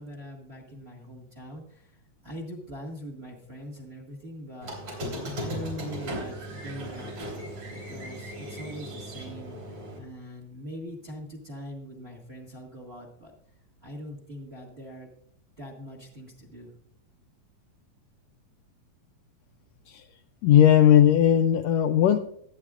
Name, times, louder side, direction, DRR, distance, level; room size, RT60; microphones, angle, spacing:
voice 1, 0.0-5.0 5.3-9.6 10.0-13.3 13.8-15.1 15.6-16.7, equal, 30° right, 1 dB, 1.3 m, -42 dB
Squeak, 4.6-10.0, equal, 50° right, 4.3 m, -37 dB
voice 2, 20.4-22.2, left 10 dB, 80° left, 7 dB, 1.5 m, -18 dB
21.0 x 8.7 x 2.4 m, 0.68 s
omnidirectional pair, 3.3 m